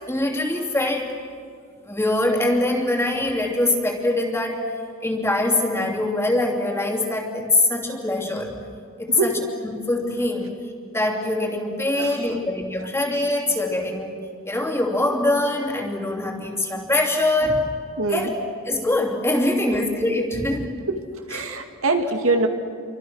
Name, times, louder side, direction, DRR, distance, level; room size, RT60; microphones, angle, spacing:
voice 1, 0.1-1.1 1.8-4.7 5.0-8.5 9.0-9.3 9.6-10.6 10.9-14.2 14.5-17.7 18.1-18.3 18.7-20.8, left 2 dB, 10° left, 0 dB, 3.1 m, -23 dB
voice 2, 9.1-9.4 12.0-12.4 12.8-12.9 18.0-18.3 19.7-19.8 20.9-21.0 21.3-22.5, right 3 dB, 80° right, 5 dB, 2.3 m, -24 dB
29.5 x 25.0 x 6.4 m, 2.2 s
head